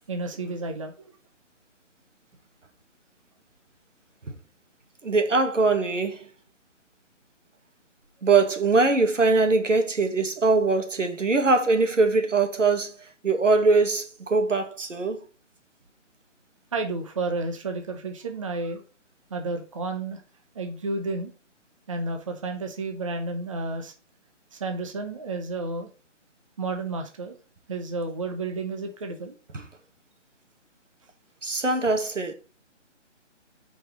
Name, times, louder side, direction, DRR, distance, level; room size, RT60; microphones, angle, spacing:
voice 1, 0.1-1.1 16.7-18.8 19.3-20.2 20.5-21.3 21.9-23.9 24.5-25.9 26.6-27.4 27.7-29.4, right 3 dB, 25° right, 1.0 m, -31 dB
voice 2, 5.0-6.3 8.2-12.9 13.2-15.2 29.5-29.6 31.4-32.3, right 3 dB, 90° right, 2.2 m, -22 dB
8.9 x 5.2 x 4.5 m
hypercardioid pair, 165°, 36 cm